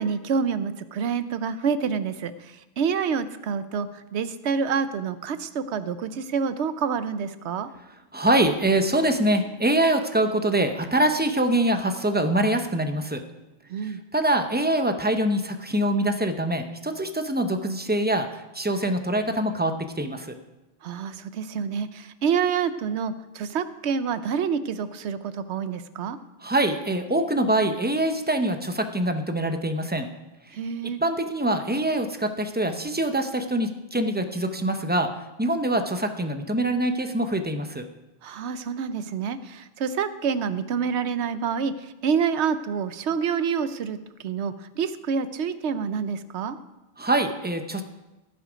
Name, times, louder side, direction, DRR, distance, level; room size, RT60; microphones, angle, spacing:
voice 1, 0.0-7.7 13.7-14.0 20.8-26.2 30.5-31.0 38.2-44.0 44.2-46.6, right 6 dB, 85° right, 12 dB, 1.0 m, -27 dB
voice 2, 8.1-13.2 13.8-20.3 26.4-30.1 30.8-35.1 35.4-37.9 47.0-47.8, right 1 dB, 10° right, 7 dB, 0.7 m, -24 dB
17.0 x 7.0 x 5.1 m, 1.0 s
omnidirectional pair, 1.1 m